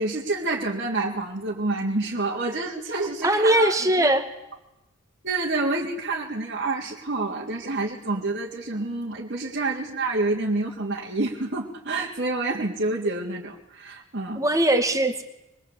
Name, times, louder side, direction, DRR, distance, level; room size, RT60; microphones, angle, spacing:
voice 1, 0.0-4.1 5.2-14.4, right 2 dB, 50° right, -4 dB, 3.4 m, -28 dB
voice 2, 3.2-4.3 14.4-15.2, right 1 dB, 15° right, 6 dB, 2.4 m, -20 dB
25.0 x 23.5 x 8.8 m, 0.89 s
head